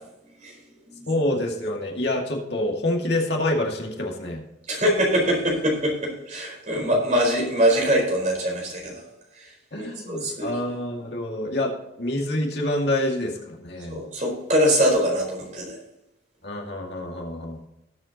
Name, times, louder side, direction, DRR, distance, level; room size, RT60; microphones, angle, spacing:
voice 1, 1.1-4.4 9.7-14.0 16.4-17.7, left 1 dB, 55° left, 0 dB, 2.3 m, -27 dB
voice 2, 4.7-9.0 9.4-10.5 13.9-15.8, equal, 40° right, -1 dB, 4.6 m, -23 dB
18.5 x 7.9 x 3.0 m, 0.90 s
head